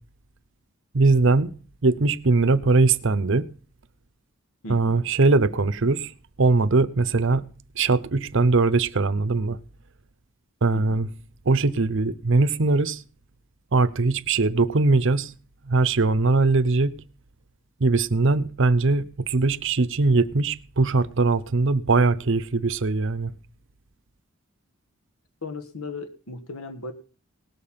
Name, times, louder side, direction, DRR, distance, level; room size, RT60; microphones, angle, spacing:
voice 1, 0.9-1.5 1.8-3.5 4.7-6.1 6.4-7.5 7.8-9.6 10.6-11.1 11.5-13.0 13.7-15.3 15.7-16.9 17.8-23.3, right 3 dB, 60° right, 0.7 m, -21 dB
voice 2, 4.6-5.1 10.7-11.0 25.4-26.9, left 3 dB, 80° left, 1.4 m, -36 dB
18.5 x 6.8 x 5.7 m
head